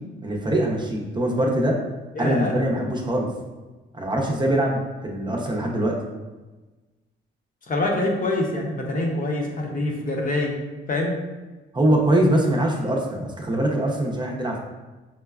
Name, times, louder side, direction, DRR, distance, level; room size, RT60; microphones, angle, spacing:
voice 1, 0.2-1.8 2.2-3.3 3.9-6.0 11.7-14.6, right 1 dB, 20° right, 0 dB, 0.7 m, -23 dB
voice 2, 2.1-2.5 7.7-10.5 10.9-11.2, left 2 dB, 45° left, 0 dB, 0.8 m, -25 dB
5.6 x 2.1 x 2.3 m, 1.2 s
cardioid pair, 90°, 20 cm